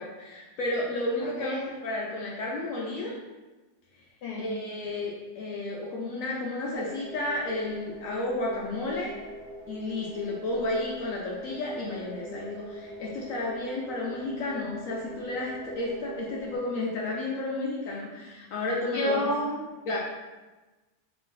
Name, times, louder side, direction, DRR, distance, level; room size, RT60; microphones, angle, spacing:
voice 1, 0.0-3.1 4.4-9.1 9.7-19.3 19.9-20.0, left 2 dB, 70° left, -3 dB, 0.8 m, -32 dB
voice 2, 1.2-1.6 4.2-4.5 18.9-19.5, left 1 dB, 85° left, -3 dB, 1.2 m, -29 dB
sound 1, 6.7-16.6, right 1 dB, 55° right, 1.4 m, -43 dB
3.7 x 3.2 x 2.6 m, 1.2 s
omnidirectional pair, 1.8 m